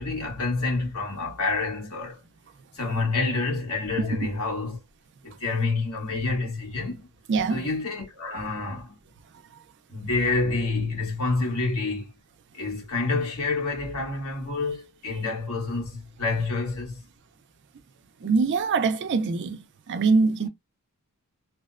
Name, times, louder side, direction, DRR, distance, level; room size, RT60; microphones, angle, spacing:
voice 1, 0.0-2.2 2.7-4.8 5.2-7.1 7.5-9.0 9.9-12.1 12.5-17.0, left 3 dB, 75° left, 1.5 m, -28 dB
voice 2, 7.3-7.7 18.2-20.5, right 4 dB, 55° right, 0.4 m, -23 dB
2.7 x 2.1 x 2.4 m
head